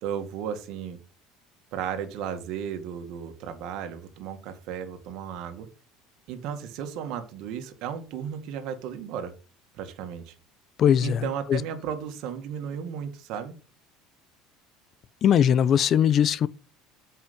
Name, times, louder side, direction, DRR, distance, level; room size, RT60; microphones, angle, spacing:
voice 1, 0.0-1.0 1.7-5.7 6.3-9.3 9.8-10.3 11.0-13.6, right 8 dB, 65° right, 2.0 m, -34 dB
voice 2, 10.8-11.2 11.5-11.6 15.2-16.5, left 9 dB, 40° left, 0.5 m, -20 dB
8.4 x 5.6 x 5.2 m
cardioid pair, 130°, 0 cm